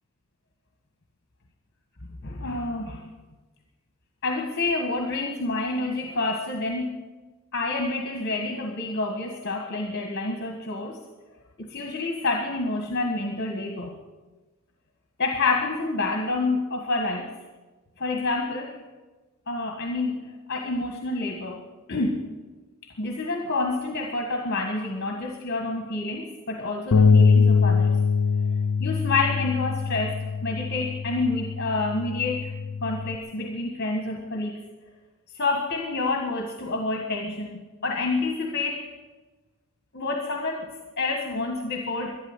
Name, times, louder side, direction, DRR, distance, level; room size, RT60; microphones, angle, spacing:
voice 1, 2.2-3.0 4.2-7.0 7.5-11.0 11.6-13.9 15.2-17.3 18.0-18.8 19.5-21.6 21.9-22.3 22.8-27.9 28.8-32.5 32.8-34.6 35.3-38.9 39.9-42.2, left 3 dB, 45° left, 3 dB, 1.5 m, -28 dB
Bass guitar, 26.9-33.2, left 5 dB, 80° left, 0.6 m, -22 dB
12.0 x 11.0 x 9.7 m, 1.2 s
head